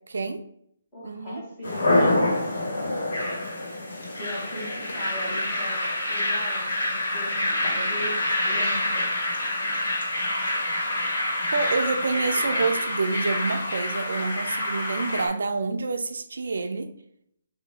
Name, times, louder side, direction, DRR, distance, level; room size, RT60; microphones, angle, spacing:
voice 1, 0.1-0.4 1.0-1.4 11.5-16.9, right 4 dB, 75° right, 7 dB, 0.4 m, -27 dB
voice 2, 0.9-2.3 4.1-5.8 6.1-8.1 8.4-9.1, equal, 5° left, -10 dB, 1.6 m, -38 dB
sound 1, 1.6-15.3, left 1 dB, 70° left, 1.5 m, -26 dB
3.6 x 2.7 x 4.1 m, 0.70 s
hypercardioid pair, 170°, 0 cm